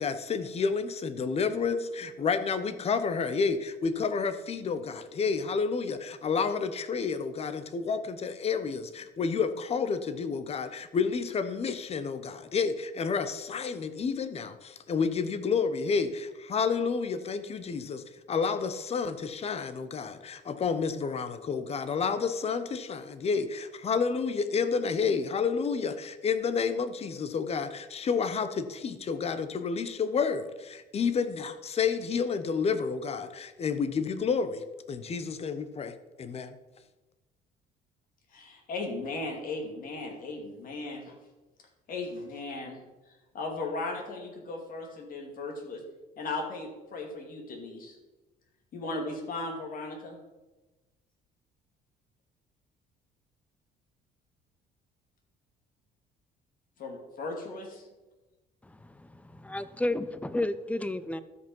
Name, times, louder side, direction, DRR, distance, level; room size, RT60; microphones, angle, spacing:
voice 1, 0.0-36.5, left 5 dB, 35° left, 11 dB, 0.9 m, -30 dB
voice 2, 38.3-41.2 41.9-42.8 43.3-45.8 46.2-48.0 48.7-50.2 56.8-57.8, left 2 dB, 55° left, 2 dB, 2.5 m, -37 dB
voice 3, 58.6-61.2, left 1 dB, 10° left, 14 dB, 0.5 m, -32 dB
12.5 x 5.3 x 5.5 m, 1.1 s
cardioid pair, 110°, 17 cm